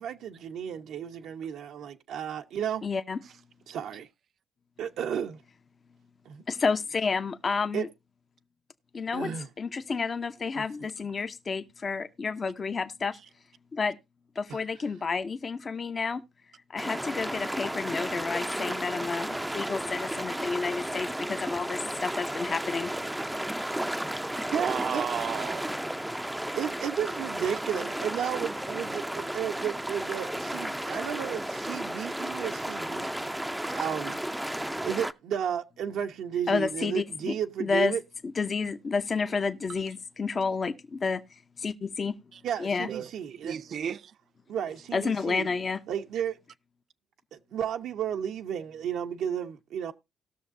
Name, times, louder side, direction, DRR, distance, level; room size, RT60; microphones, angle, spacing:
voice 1, 0.0-2.8 3.7-4.1 4.8-5.4 6.3-6.4 7.7-7.9 9.1-9.5 10.5-10.9 14.5-14.6 24.5-25.0 26.3-34.2 34.8-38.0 42.4-43.6 44.5-45.5 45.9-46.4 47.3-49.9, right 9 dB, 80° right, 0.8 m, -33 dB
voice 2, 2.8-3.2 6.5-7.9 8.9-9.3 9.6-13.2 13.7-14.0 14.4-16.2 16.7-22.9 36.5-37.9 38.4-41.2 41.6-42.2 42.6-42.9 44.9-45.8, left 4 dB, 35° left, 0.6 m, -30 dB
sound 1, 16.8-35.1, right 1 dB, 5° right, 0.5 m, -33 dB
voice 3, 24.6-25.7 42.9-43.1 43.4-44.1, right 8 dB, 55° right, 0.4 m, -33 dB
18.5 x 6.5 x 2.6 m
cardioid pair, 110°, 0 cm